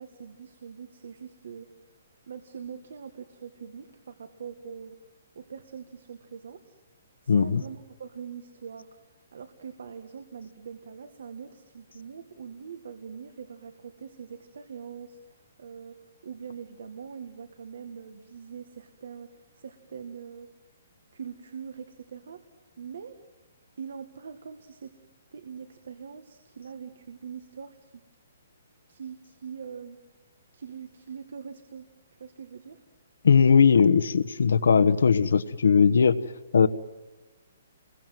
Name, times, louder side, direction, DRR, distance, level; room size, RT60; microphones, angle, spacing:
voice 1, 0.0-1.7 2.3-5.0 5.4-6.8 7.2-8.9 9.3-16.0 16.2-20.5 21.1-22.4 22.8-23.2 23.8-24.9 25.3-27.9 28.9-30.0 30.5-31.9 32.2-32.8, right 6 dB, 60° right, 9 dB, 1.9 m, -43 dB
voice 2, 7.3-7.6 33.2-36.2 36.5-36.7, left 6 dB, 75° left, 13 dB, 1.2 m, -19 dB
29.0 x 22.0 x 7.7 m, 1.1 s
hypercardioid pair, 180°, 0 cm